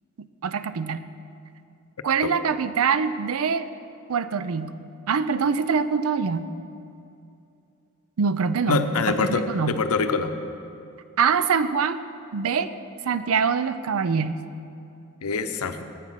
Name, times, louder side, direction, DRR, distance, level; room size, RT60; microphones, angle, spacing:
voice 1, 0.4-1.1 2.0-3.7 4.1-4.7 5.1-6.5 8.2-9.8 11.2-12.0 12.3-12.7 13.0-14.4, right 6 dB, 70° right, 13 dB, 0.5 m, -24 dB
voice 2, 8.7-10.3 15.2-15.8, left 4 dB, 85° left, 9 dB, 0.7 m, -25 dB
10.5 x 8.3 x 5.8 m, 2.6 s
head